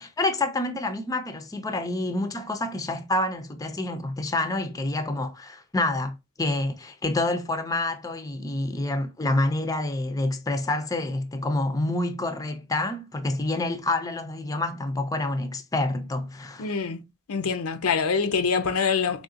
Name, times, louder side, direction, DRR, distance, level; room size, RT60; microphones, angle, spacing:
voice 1, 0.0-16.7, left 2 dB, 15° left, 0.4 m, -28 dB
voice 2, 16.6-17.0 17.3-19.2, left 5 dB, 80° left, 0.5 m, -25 dB
3.7 x 3.5 x 2.5 m
head